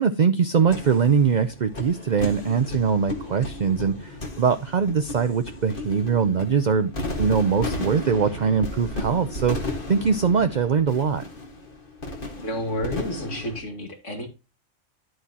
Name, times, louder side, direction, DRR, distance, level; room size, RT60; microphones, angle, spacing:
voice 1, 0.0-6.9 7.2-11.2, right 6 dB, 45° right, 0.7 m, -22 dB
sound 1, 0.6-13.6, left 1 dB, 45° left, 1.9 m, -34 dB
voice 2, 12.4-14.3, left 1 dB, 70° left, 2.8 m, -30 dB
10.5 x 7.9 x 2.9 m
omnidirectional pair, 1.3 m